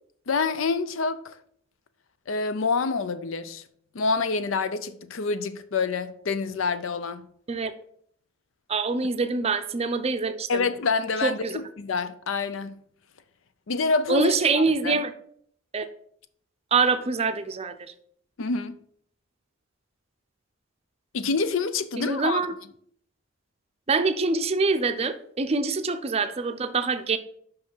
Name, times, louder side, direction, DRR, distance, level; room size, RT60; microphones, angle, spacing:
voice 1, 0.3-1.4 2.3-3.6 3.9-7.3 10.5-12.8 13.7-15.0 18.4-18.8 21.1-22.4, left 4 dB, 70° left, 0.5 m, -27 dB
voice 2, 8.7-10.6 11.2-11.6 14.1-15.1 15.7-15.9 16.7-17.9 22.0-22.5 23.9-27.2, right 4 dB, 30° right, 0.5 m, -25 dB
5.7 x 5.5 x 5.5 m
head